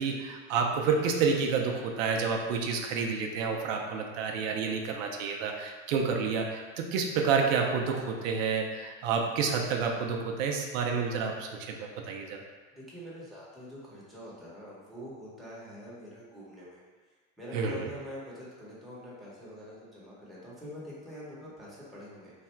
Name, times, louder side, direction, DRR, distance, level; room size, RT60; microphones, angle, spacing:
voice 1, 0.0-12.4 17.5-17.9, right 5 dB, 85° right, 2 dB, 0.6 m, -29 dB
voice 2, 12.8-16.8 17.4-22.3, equal, ahead, -8 dB, 1.0 m, -45 dB
3.3 x 2.4 x 4.4 m, 1.4 s
supercardioid pair, 130°, 38 cm